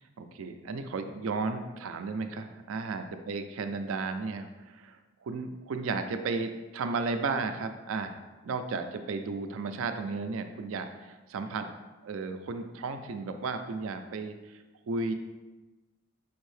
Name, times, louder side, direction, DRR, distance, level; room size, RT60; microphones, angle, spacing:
voice 1, 0.2-11.7 12.0-14.6 14.9-15.1, right 4 dB, 65° right, 8 dB, 0.4 m, -34 dB
5.0 x 2.7 x 3.2 m, 1.2 s
head